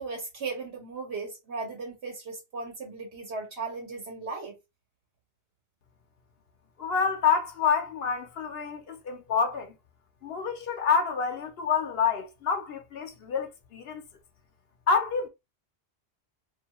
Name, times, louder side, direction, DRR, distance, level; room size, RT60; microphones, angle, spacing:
voice 1, 0.0-4.5, right 4 dB, 80° right, 1.0 m, -36 dB
voice 2, 6.8-9.7 10.2-14.0 14.9-15.3, left 6 dB, 70° left, 0.8 m, -27 dB
2.5 x 2.2 x 2.8 m
omnidirectional pair, 1.1 m